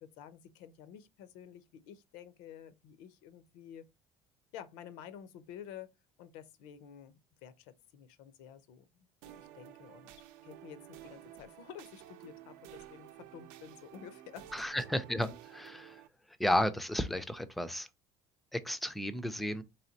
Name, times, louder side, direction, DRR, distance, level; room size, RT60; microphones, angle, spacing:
voice 1, 0.0-3.9 4.5-5.9 6.2-8.9 9.3-14.5, left 9 dB, 85° left, 0.6 m, -51 dB
sound 1, 9.2-16.1, right 13 dB, 80° right, 0.6 m, -52 dB
voice 2, 14.5-16.0 16.4-17.9 18.5-19.6, left 1 dB, ahead, 0.3 m, -33 dB
4.1 x 3.2 x 2.7 m
cardioid pair, 165°, 12 cm